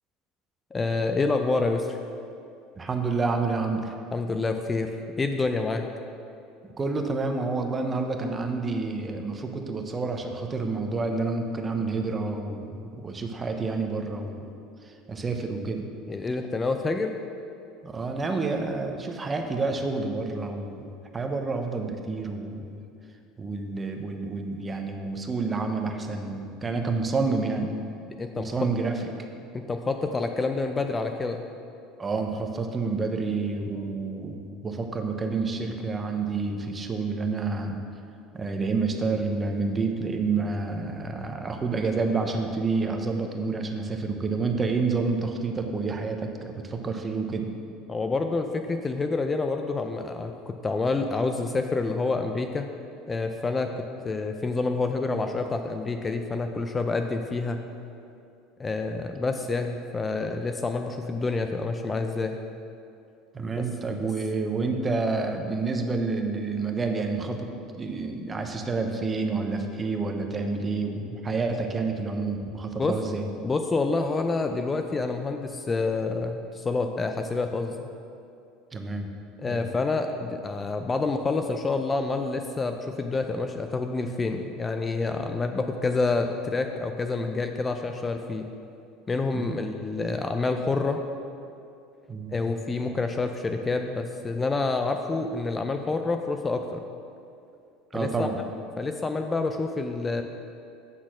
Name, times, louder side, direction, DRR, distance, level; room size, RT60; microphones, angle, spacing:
voice 1, 0.7-2.0 4.1-4.9 5.2-5.9 16.1-17.1 28.2-28.5 29.5-31.4 47.9-52.7 53.1-57.6 58.6-62.4 63.6-63.7 72.8-72.9 73.4-77.9 79.4-88.5 89.1-91.0 92.3-96.8 97.9-98.3 98.8-100.2, left 3 dB, 20° left, 6 dB, 0.4 m, -28 dB
voice 2, 2.8-3.9 6.8-14.5 14.8-15.9 17.8-22.8 23.4-27.8 28.4-29.1 32.0-37.8 38.3-47.5 63.3-67.5 67.8-73.3 78.7-79.1 79.4-79.6 89.3-89.6 92.1-92.4 97.9-98.4, right 4 dB, 20° right, 4 dB, 0.7 m, -29 dB
8.3 x 4.1 x 6.1 m, 2.6 s
supercardioid pair, 115°, 0 cm